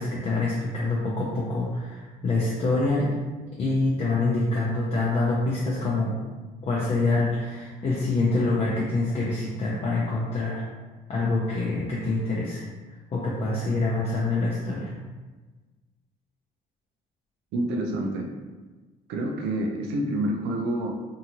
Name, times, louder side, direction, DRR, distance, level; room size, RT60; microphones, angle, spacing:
voice 1, 0.0-3.1 3.6-6.2 6.6-10.6 11.1-12.6 13.1-14.9, left 2 dB, 35° left, -6 dB, 0.5 m, -26 dB
voice 2, 17.5-18.3 19.1-20.9, right 1 dB, 85° right, 1 dB, 0.5 m, -27 dB
2.7 x 2.4 x 2.9 m, 1.3 s
cardioid pair, 110°, 17 cm